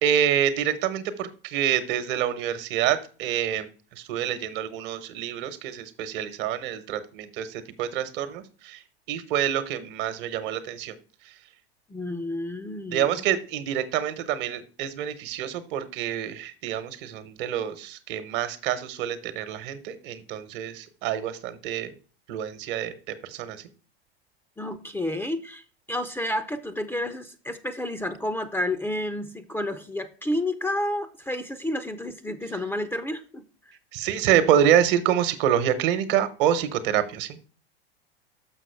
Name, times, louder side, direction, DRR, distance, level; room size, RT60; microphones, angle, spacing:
voice 1, 0.0-3.7 4.0-8.8 9.1-10.9 12.9-21.9 22.3-23.6 33.9-37.5, right 10 dB, 60° right, 12 dB, 1.1 m, -27 dB
voice 2, 11.9-13.2 24.6-33.8, left 1 dB, 5° left, 10 dB, 0.5 m, -30 dB
6.3 x 6.2 x 4.5 m, 0.38 s
hypercardioid pair, 90°, 31 cm